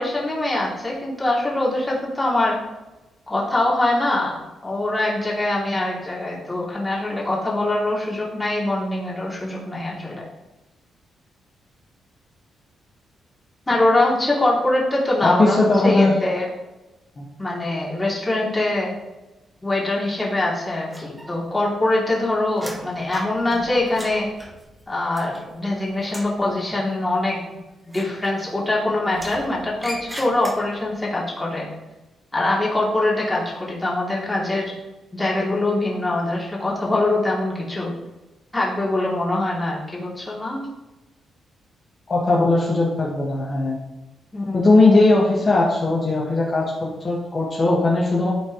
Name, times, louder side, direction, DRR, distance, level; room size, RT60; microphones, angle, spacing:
voice 1, 0.0-2.6 3.3-4.4 4.6-10.2 13.7-16.4 17.4-18.9 19.6-24.3 24.9-27.4 27.9-31.7 32.3-34.7 35.1-37.9 38.5-40.7 44.3-44.8, left 2 dB, 15° left, -5 dB, 2.8 m, -23 dB
voice 2, 15.2-16.1 17.2-17.3 42.1-43.8 44.5-48.3, left 2 dB, 40° left, -6 dB, 1.8 m, -18 dB
sound 1, 20.9-21.7 22.0-25.7 26.0-26.4 27.8-28.7 29.1-30.9, equal, 10° right, 1.4 m, -39 dB
13.0 x 4.4 x 3.2 m, 1.1 s
cardioid pair, 90°, 0 cm